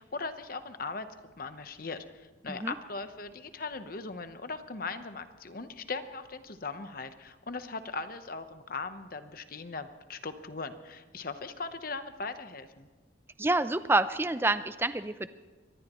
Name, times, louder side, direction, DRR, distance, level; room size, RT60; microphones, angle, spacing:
voice 1, 0.0-12.9, left 4 dB, 50° left, 9 dB, 1.0 m, -39 dB
voice 2, 13.4-15.3, right 2 dB, 10° right, 12 dB, 0.5 m, -27 dB
24.0 x 19.0 x 3.1 m, 1.3 s
head